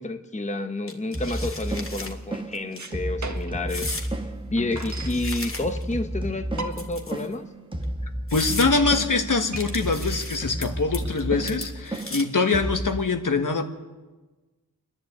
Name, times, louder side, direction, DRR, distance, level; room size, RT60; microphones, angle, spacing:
voice 1, 0.0-4.2 4.5-7.5, left 2 dB, 20° left, 1.0 m, -30 dB
sound 1, 0.9-2.1 2.5-2.8 3.7-4.1 4.7-5.9 6.7-7.3 7.8-7.9 8.3-8.7 9.6-10.7 10.9-11.2 11.5-12.4, left 2 dB, 35° left, 2.2 m, -35 dB
sound 2, 1.1-13.0, right 1 dB, 15° right, 1.3 m, -32 dB
sound 3, 2.7-3.7 4.0-4.1 4.3-5.2 6.0-6.1 6.4-7.1 7.5-7.6 7.9-8.0 8.4-8.9 9.5-12.4, right 3 dB, 50° right, 1.8 m, -38 dB
voice 2, 8.3-13.7, left 4 dB, 60° left, 1.6 m, -24 dB
29.0 x 11.0 x 8.5 m
wide cardioid pair, 90°, 36 cm